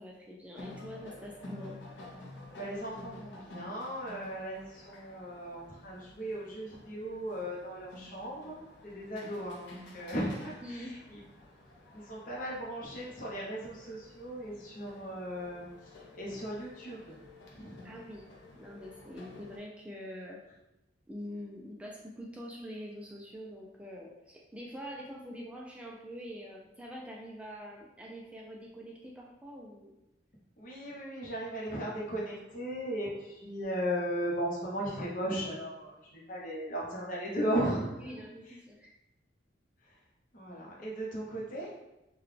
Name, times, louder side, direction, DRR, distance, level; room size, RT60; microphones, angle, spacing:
voice 1, 0.0-1.8 10.6-11.0 17.8-18.3 18.6-20.4 21.1-29.9 38.0-38.9, equal, 5° right, -2 dB, 0.3 m, -45 dB
sound 1, 0.5-19.6, left 2 dB, 75° left, 0.7 m, -51 dB
voice 2, 2.6-11.2 11.9-17.2 17.5-17.8 30.6-38.1 40.3-41.7, equal, 45° left, -4 dB, 0.7 m, -37 dB
3.8 x 2.2 x 3.2 m, 0.93 s
head